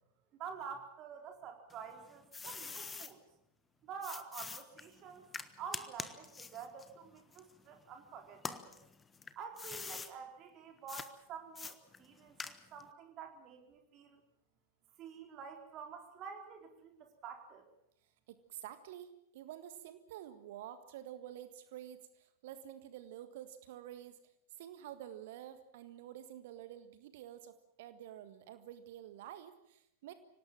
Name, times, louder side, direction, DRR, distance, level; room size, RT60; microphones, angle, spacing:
voice 1, 0.4-3.2 3.8-5.3 5.6-8.8 9.4-14.2 15.0-17.6, right 6 dB, 35° right, 4 dB, 4.4 m, -48 dB
sound 1, 1.7-3.1 4.0-7.9 8.3-10.1 10.9-11.1 11.6-12.9, left 4 dB, 15° left, 1.3 m, -45 dB
voice 2, 18.3-24.2 24.6-30.1, right 11 dB, 55° right, 11 dB, 1.5 m, -49 dB
25.0 x 18.5 x 7.5 m, 0.75 s
figure-of-eight pair, 90°, 0 cm